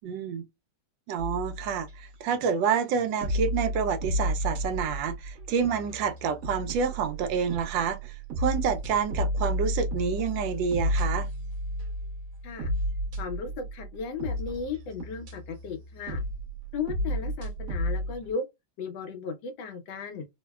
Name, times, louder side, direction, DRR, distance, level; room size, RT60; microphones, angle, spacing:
voice 1, 0.0-0.4 1.1-11.3, right 6 dB, 85° right, 1.3 m, -28 dB
sound 1, 1.2-2.5 2.9-18.3, equal, 55° right, 1.3 m, -32 dB
voice 2, 13.2-16.2 16.7-18.4 18.8-20.2, left 5 dB, 85° left, 1.5 m, -35 dB
3.6 x 2.1 x 2.2 m
omnidirectional pair, 2.0 m